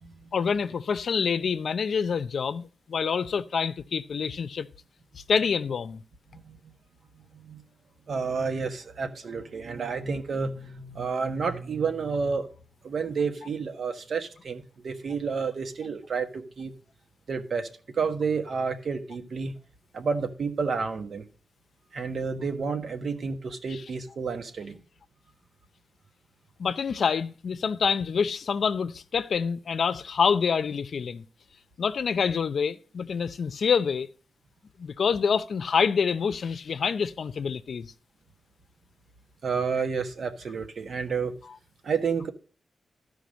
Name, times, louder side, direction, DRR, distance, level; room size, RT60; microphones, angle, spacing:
voice 1, 0.3-4.7 5.1-6.0 23.7-23.8 26.6-31.2 31.8-34.1 34.8-37.9, left 6 dB, 70° left, 0.6 m, -27 dB
voice 2, 6.3-6.7 7.1-7.6 8.1-12.5 12.8-16.7 17.3-17.7 17.9-19.5 19.9-21.2 21.9-24.8 39.4-41.3 41.8-42.3, right 5 dB, 65° right, 1.3 m, -30 dB
13.0 x 5.1 x 5.1 m
wide cardioid pair, 100°, 0 cm